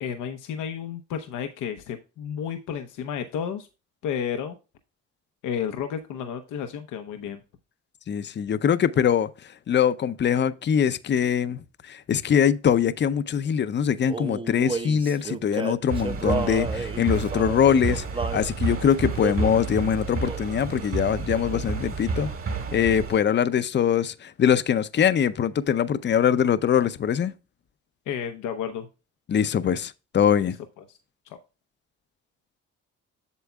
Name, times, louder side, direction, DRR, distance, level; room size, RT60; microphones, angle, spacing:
voice 1, 0.0-3.7 4.0-4.6 5.4-7.4 28.1-28.9 30.8-30.9 31.3-31.4, left 8 dB, 90° left, 0.8 m, -32 dB
voice 2, 8.1-18.0 18.3-22.3 22.7-27.3 29.3-30.6, left 8 dB, 35° left, 0.6 m, -23 dB
Male singing, 14.1-18.5 19.2-19.6 20.3-20.5 20.8-21.8, right 4 dB, 15° right, 0.6 m, -32 dB
sound 1, 15.9-23.2, right 4 dB, 45° right, 1.8 m, -30 dB
8.2 x 7.0 x 2.3 m
cardioid pair, 90°, 30 cm